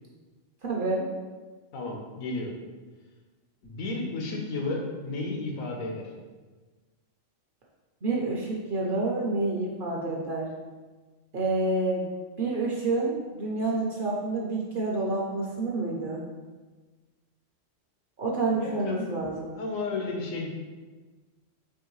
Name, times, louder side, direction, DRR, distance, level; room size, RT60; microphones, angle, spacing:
voice 1, 0.6-1.1 8.0-10.5 11.3-12.1 12.4-16.2 18.2-19.5, right 2 dB, 55° right, -3 dB, 0.6 m, -28 dB
voice 2, 1.7-2.5 3.6-6.1 18.5-19.2 19.6-20.5, left 3 dB, 90° left, 0 dB, 1.2 m, -33 dB
4.5 x 2.9 x 3.0 m, 1.3 s
omnidirectional pair, 1.3 m